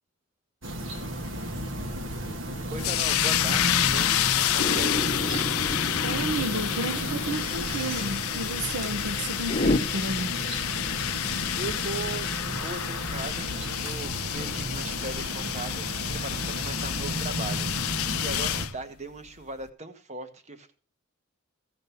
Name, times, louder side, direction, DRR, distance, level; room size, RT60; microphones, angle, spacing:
sound 1, 0.6-18.7, right 1 dB, 65° right, 1.5 m, -33 dB
voice 1, 2.7-5.1 11.5-13.5 13.8-20.7, right 3 dB, 30° right, 1.2 m, -38 dB
sound 2, 2.8-18.7, left 13 dB, 90° left, 0.5 m, -29 dB
sound 3, 4.6-9.8, left 2 dB, 35° left, 0.7 m, -31 dB
voice 2, 6.0-10.4, right 2 dB, 90° right, 1.0 m, -32 dB
15.5 x 5.3 x 6.9 m
head